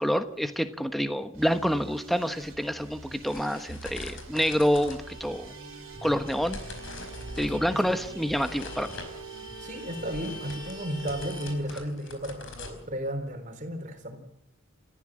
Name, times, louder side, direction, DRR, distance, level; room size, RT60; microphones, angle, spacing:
voice 1, 0.0-5.5 6.0-6.6 7.4-9.0, equal, ahead, 8 dB, 1.2 m, -27 dB
sound 1, 1.3-10.6, right 2 dB, 70° right, 3.3 m, -46 dB
sound 2, 2.2-13.4, left 3 dB, 65° left, 4.9 m, -45 dB
Vehicle horn car horn honking, 5.0-11.5, right 2 dB, 20° right, 5.8 m, -43 dB
voice 2, 7.5-7.8 9.6-14.2, equal, 35° right, 5 dB, 4.1 m, -34 dB
30.0 x 15.0 x 7.6 m, 0.81 s
head